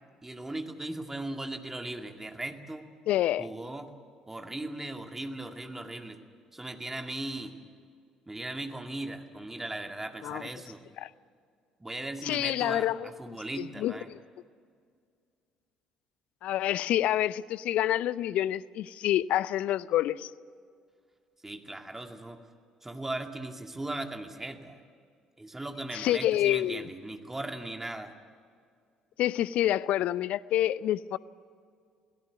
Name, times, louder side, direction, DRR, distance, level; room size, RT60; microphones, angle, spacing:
voice 1, 0.2-2.9 3.4-3.9 4.3-6.2 6.5-7.6 8.3-10.9 11.8-14.1 21.4-22.4 22.8-24.8 25.4-28.1, right 2 dB, 15° right, 2.3 m, -38 dB
voice 2, 3.1-3.5 10.2-10.4 11.0-11.1 12.2-14.2 16.4-20.3 25.9-26.9 29.2-31.2, left 13 dB, 60° left, 0.5 m, -28 dB
22.5 x 17.5 x 8.3 m
figure-of-eight pair, 50°, 2 cm